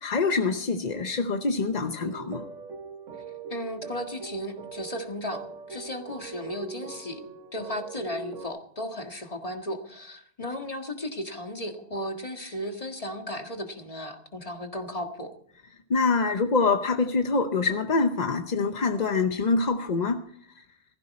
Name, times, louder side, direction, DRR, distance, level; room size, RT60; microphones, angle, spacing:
voice 1, 0.0-2.4 15.9-20.2, left 4 dB, 40° left, 7 dB, 0.6 m, -25 dB
sound 1, 2.0-8.5, right 5 dB, 55° right, 1.5 m, -41 dB
voice 2, 3.5-7.2 7.5-15.3, left 1 dB, 25° left, 4 dB, 1.7 m, -35 dB
17.0 x 14.5 x 4.3 m, 0.63 s
omnidirectional pair, 1.6 m